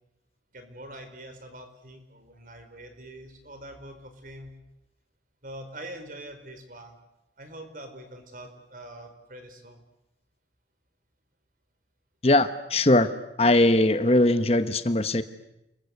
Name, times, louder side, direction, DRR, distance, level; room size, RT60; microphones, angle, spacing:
voice 1, 0.5-4.5 5.4-7.0 7.4-9.8, right 1 dB, 50° right, 7 dB, 4.4 m, -44 dB
voice 2, 12.2-13.1 13.4-15.2, left 1 dB, 35° left, 11 dB, 1.1 m, -20 dB
29.5 x 22.0 x 8.2 m, 0.90 s
head